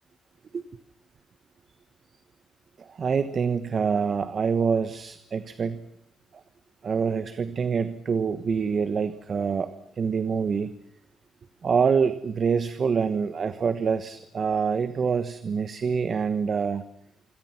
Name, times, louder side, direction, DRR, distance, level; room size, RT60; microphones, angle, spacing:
voice 1, 2.8-5.8 6.3-6.4 6.8-10.7 11.6-16.8, right 6 dB, 40° right, 12 dB, 1.2 m, -26 dB
27.5 x 26.0 x 6.0 m, 0.76 s
cardioid pair, 135°, 0 cm